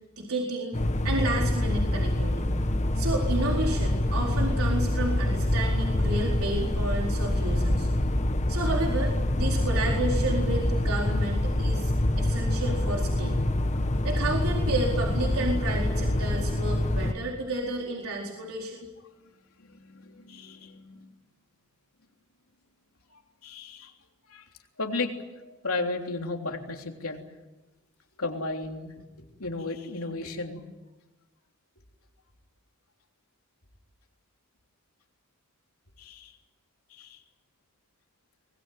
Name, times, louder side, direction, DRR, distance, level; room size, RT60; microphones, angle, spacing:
voice 1, 0.2-0.8 1.0-2.4 3.0-7.9 8.5-13.4 14.0-18.9, right 2 dB, 80° right, -1 dB, 4.3 m, -31 dB
sound 1, 0.7-17.1, left 1 dB, 35° left, 1.3 m, -26 dB
voice 2, 19.6-21.0 23.4-23.9 24.3-24.5 24.8-25.1 25.4-27.2 28.2-28.9 29.2-30.6 36.0-36.3 36.9-37.2, left 3 dB, 85° left, 3 dB, 3.4 m, -34 dB
24.5 x 20.5 x 9.3 m, 1.1 s
head